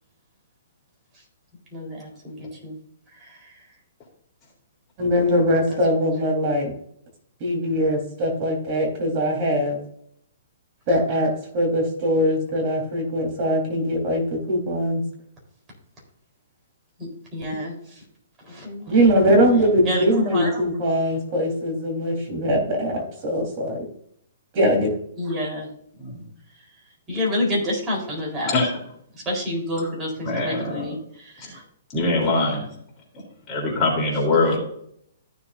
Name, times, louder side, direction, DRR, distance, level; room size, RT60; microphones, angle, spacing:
voice 1, 1.7-2.8 3.2-3.5 5.7-6.2 17.0-18.0 18.5-19.3 19.5-20.6 25.2-25.7 27.1-28.7 29.1-31.6 33.7-33.8 34.1-34.6, left 1 dB, 20° right, -2 dB, 4.0 m, -29 dB
voice 2, 5.0-6.7 7.4-9.8 10.9-15.0 18.9-23.8 24.5-24.9 32.2-32.3, equal, 35° right, 0 dB, 4.0 m, -21 dB
voice 3, 30.2-30.9 31.4-31.5 31.9-32.7 33.5-34.6, left 2 dB, 25° left, -2 dB, 3.5 m, -23 dB
14.5 x 7.1 x 2.7 m, 0.68 s
hypercardioid pair, 145°, 0 cm